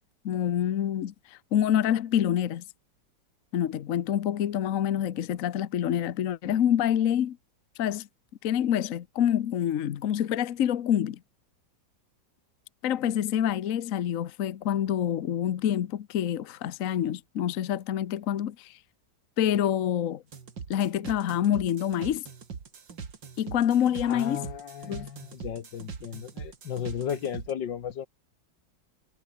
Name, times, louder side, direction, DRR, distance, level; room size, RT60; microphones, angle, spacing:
voice 1, 0.2-2.6 3.5-7.4 7.8-8.1 8.4-11.2 12.8-18.7 19.4-20.2 20.7-22.2 23.4-24.5 24.9-25.1, left 10 dB, 55° left, 1.1 m, -27 dB
sound 1, 20.3-27.5, right 6 dB, 80° right, 3.1 m, -42 dB
voice 2, 24.0-28.1, left 9 dB, 75° left, 2.0 m, -35 dB
omnidirectional pair, 2.0 m